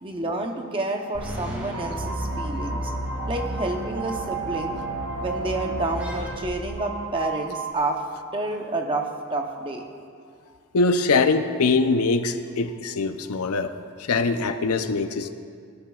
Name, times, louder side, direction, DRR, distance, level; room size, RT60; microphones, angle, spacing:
voice 1, 0.0-2.9 3.3-4.8 5.2-8.0 8.3-9.8, right 2 dB, 25° right, 3 dB, 0.7 m, -29 dB
sound 1, 1.1-7.3, equal, 10° right, 1.8 m, -33 dB
sound 2, 1.5-7.7, right 6 dB, 55° right, 0.8 m, -35 dB
voice 2, 10.7-13.7 14.0-15.3, left 3 dB, 80° left, 9 dB, 0.5 m, -23 dB
18.5 x 10.5 x 2.4 m, 2.3 s
head